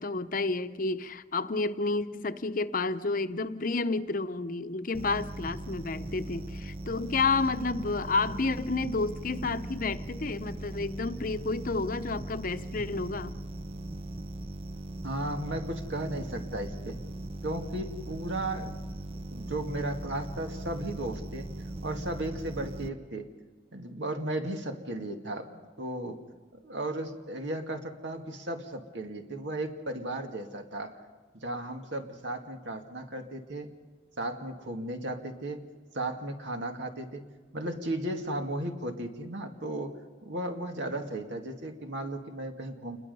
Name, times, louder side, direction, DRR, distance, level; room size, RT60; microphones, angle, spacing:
voice 1, 0.0-13.3, left 3 dB, 50° left, 10 dB, 0.8 m, -30 dB
sound 1, 4.9-22.9, right 1 dB, 30° right, 0.7 m, -39 dB
voice 2, 15.0-17.0 17.4-18.7 19.3-21.5 21.8-23.3 23.7-26.2 26.6-31.0 31.3-33.7 34.2-35.6 35.9-37.2 37.5-40.0 40.2-43.0, right 1 dB, 80° right, 4 dB, 2.1 m, -35 dB
28.5 x 21.5 x 5.5 m, 1.4 s
head